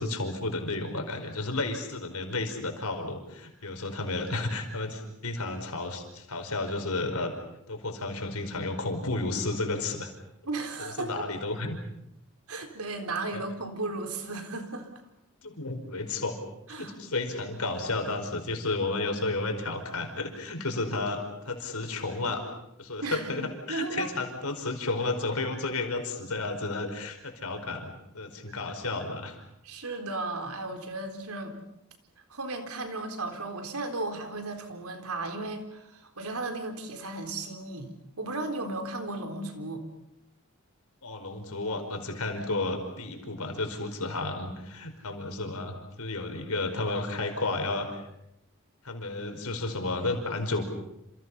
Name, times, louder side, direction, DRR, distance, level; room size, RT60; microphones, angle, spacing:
voice 1, 0.0-7.3 7.7-10.1 10.8-11.8 13.3-13.4 15.4-16.4 16.8-22.4 22.8-29.4 41.0-48.0 48.8-50.6, left 2 dB, 90° left, 5 dB, 5.0 m, -32 dB
voice 2, 10.4-11.3 12.5-14.9 16.7-17.0 23.0-24.1 29.6-31.6 32.3-37.9 38.2-39.8, right 2 dB, 85° right, 6 dB, 4.0 m, -35 dB
28.5 x 28.5 x 5.7 m, 0.81 s
head